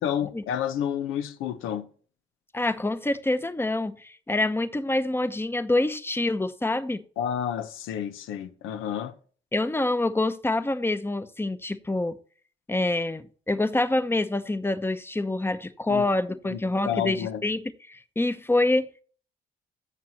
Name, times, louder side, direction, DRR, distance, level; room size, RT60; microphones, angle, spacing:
voice 1, 0.0-1.9 7.2-9.1 15.9-16.0 16.4-16.6 16.9-17.4, left 9 dB, 90° left, 1.0 m, -30 dB
voice 2, 2.5-7.0 9.5-12.2 12.7-17.6 17.9-18.9, left 2 dB, 10° left, 0.8 m, -26 dB
15.5 x 6.0 x 2.9 m
cardioid pair, 90°, 20 cm